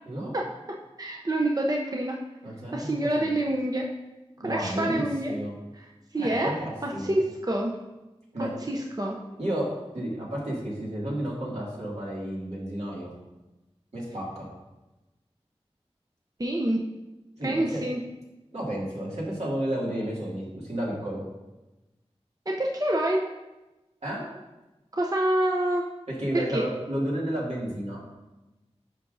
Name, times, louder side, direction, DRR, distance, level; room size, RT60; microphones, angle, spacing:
voice 1, 1.0-2.2 2.7-3.9 4.4-5.3 6.1-6.5 6.8-7.7 8.4-9.2 16.4-16.8 17.4-18.0 22.5-23.2 24.9-25.8 26.3-26.6, right 1 dB, 35° right, 0 dB, 0.7 m, -27 dB
voice 2, 2.4-3.3 4.4-5.5 6.2-7.2 8.3-8.5 9.4-9.7 9.9-13.1 13.9-14.4 17.4-17.9 18.5-21.3 24.0-24.3 26.1-28.0, right 1 dB, 75° right, -6 dB, 2.4 m, -32 dB
10.5 x 5.9 x 2.7 m, 1.1 s
wide cardioid pair, 45°, 11 cm